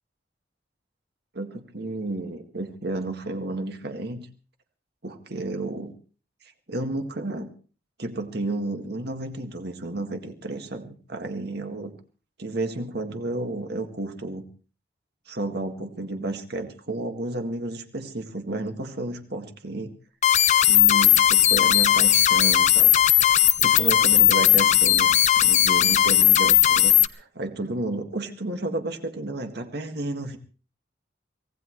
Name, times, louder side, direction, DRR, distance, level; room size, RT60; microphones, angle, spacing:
voice 1, 1.3-4.3 5.0-5.9 6.7-7.5 8.0-11.9 12.4-14.4 15.3-19.9 20.6-22.9 23.6-25.1 25.4-30.4, right 2 dB, 60° right, 5 dB, 1.9 m, -32 dB
sound 1, 20.2-27.1, left 11 dB, 40° left, 0.7 m, -18 dB
24.5 x 17.5 x 3.2 m, 0.39 s
head